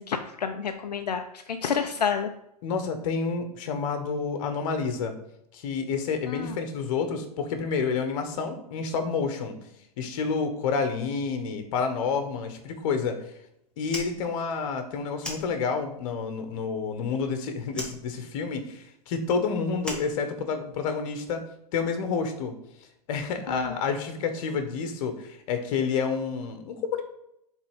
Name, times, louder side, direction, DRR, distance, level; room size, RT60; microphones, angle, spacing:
voice 1, 0.0-2.3 6.3-6.5 23.5-23.7, left 7 dB, 85° left, 6 dB, 0.6 m, -29 dB
voice 2, 2.6-5.1 5.5-9.5 10.0-13.2 13.8-21.4 21.7-22.5 23.1-27.0, left 5 dB, 55° left, 7 dB, 1.3 m, -29 dB
Fire, 13.8-16.1 16.3-17.3 17.7-20.9, left 1 dB, 5° left, 1.7 m, -40 dB
7.3 x 3.7 x 5.0 m, 0.80 s
hypercardioid pair, 110°, 20 cm